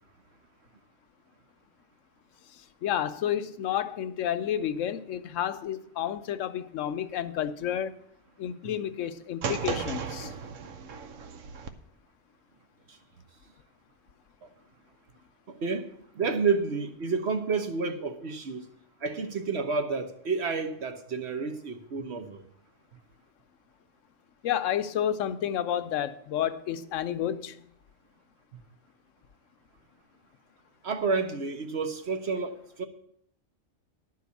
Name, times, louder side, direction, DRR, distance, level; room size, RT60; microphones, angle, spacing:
voice 1, 2.5-7.9 8.4-10.3 24.4-27.7, left 10 dB, 85° left, 1.0 m, -30 dB
sound 1, 9.4-11.7, right 6 dB, 85° right, 1.1 m, -35 dB
voice 2, 15.5-18.7 19.0-22.4 30.8-32.8, right 4 dB, 60° right, 1.2 m, -30 dB
11.0 x 4.7 x 8.2 m
omnidirectional pair, 1.3 m